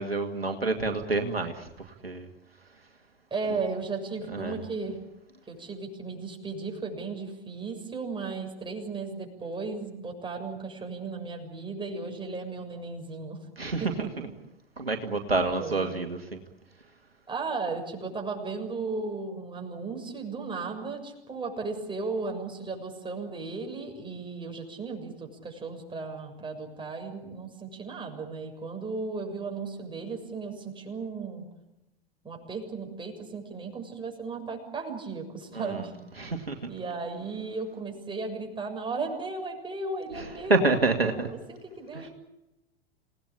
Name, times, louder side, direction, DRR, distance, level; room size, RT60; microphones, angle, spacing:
voice 1, 0.0-1.7 2.0-2.3 4.3-4.6 13.6-13.8 14.8-16.4 35.5-35.8 36.2-36.7 40.2-40.3 40.5-41.3 41.9-42.0, right 3 dB, 90° right, 5 dB, 2.3 m, -27 dB
voice 2, 3.3-5.0 5.5-13.4 13.8-14.1 15.6-15.9 17.3-31.5 32.2-35.9 36.7-42.1, right 4 dB, 15° right, 3 dB, 7.0 m, -35 dB
28.0 x 18.5 x 8.8 m, 0.95 s
figure-of-eight pair, 90°, 29 cm